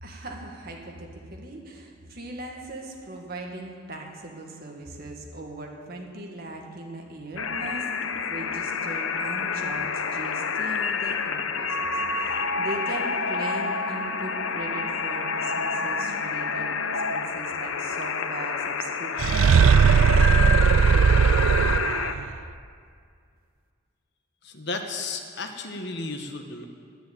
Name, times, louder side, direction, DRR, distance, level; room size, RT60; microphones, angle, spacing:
voice 1, 0.0-21.4, right 2 dB, 50° right, 1 dB, 1.9 m, -39 dB
sound 1, 7.4-22.1, left 5 dB, 85° left, 0.8 m, -28 dB
sound 2, 19.2-22.2, right 6 dB, 75° right, 0.3 m, -18 dB
voice 2, 24.4-26.6, left 3 dB, 55° left, 5 dB, 1.1 m, -33 dB
10.5 x 10.5 x 9.0 m, 2.2 s
head